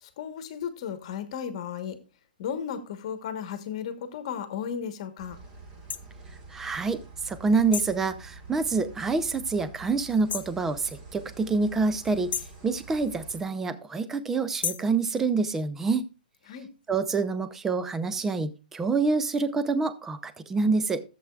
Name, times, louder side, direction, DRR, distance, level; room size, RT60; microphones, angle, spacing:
voice 1, 0.0-2.0 2.4-5.4 16.5-16.7, left 8 dB, 40° left, 1.1 m, -34 dB
sound 1, 5.2-13.4, right 3 dB, 20° right, 1.5 m, -47 dB
sound 2, 5.9-6.0 7.7-8.0 10.3-10.6 12.3-12.6 14.6-14.9, left 7 dB, 85° left, 0.8 m, -32 dB
voice 2, 6.5-7.0 7.2-12.3 12.6-16.0 16.9-21.0, right 4 dB, 5° right, 0.4 m, -27 dB
14.5 x 7.5 x 2.3 m
hypercardioid pair, 170°, 5 cm